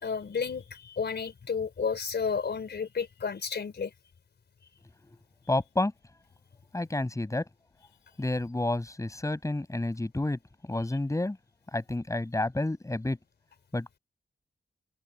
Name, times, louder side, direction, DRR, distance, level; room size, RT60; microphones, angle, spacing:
voice 1, 0.0-3.9, left 6 dB, 70° left, 4.4 m, -32 dB
voice 2, 5.5-5.9 6.7-7.5 8.2-11.4 11.7-13.2 13.7-14.0, left 2 dB, 15° left, 7.9 m, -30 dB
open air
wide cardioid pair, 160°, 18 cm